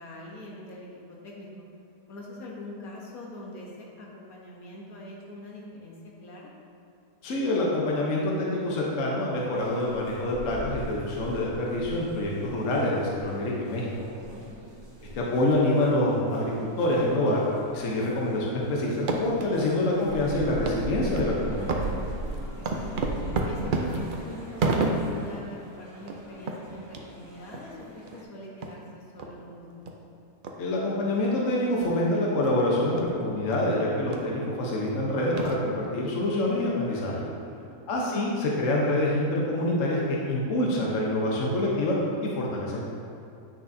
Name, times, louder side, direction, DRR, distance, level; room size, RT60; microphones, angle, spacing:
voice 1, 0.0-1.5 2.1-6.5 14.2-14.6 22.1-23.1 23.4-29.7 37.4-37.7, left 1 dB, 80° left, -3 dB, 1.6 m, -43 dB
voice 2, 7.2-13.9 15.1-17.4 17.7-21.8 30.6-37.3 37.9-42.0 42.2-42.8, left 1 dB, 65° left, -3 dB, 1.2 m, -26 dB
sound 1, 9.5-28.2, right 2 dB, 90° right, 2.3 m, -41 dB
sound 2, 18.9-19.5 19.9-20.0 20.7-20.8 21.2-21.3 21.7-25.3 25.7-25.8 26.0-26.2 26.5-26.6 26.9-27.0 27.5-27.6 28.1-28.2 28.6-28.7 29.2-29.3 29.9-30.0 30.4-30.5 31.2-31.4 31.8-32.0 32.4-32.5 33.0-33.1 33.5-33.6 34.1-34.3 34.9-35.0 35.4-35.9, right 3 dB, 60° right, 0.5 m, -30 dB
8.5 x 6.0 x 2.7 m, 2.7 s
omnidirectional pair, 1.5 m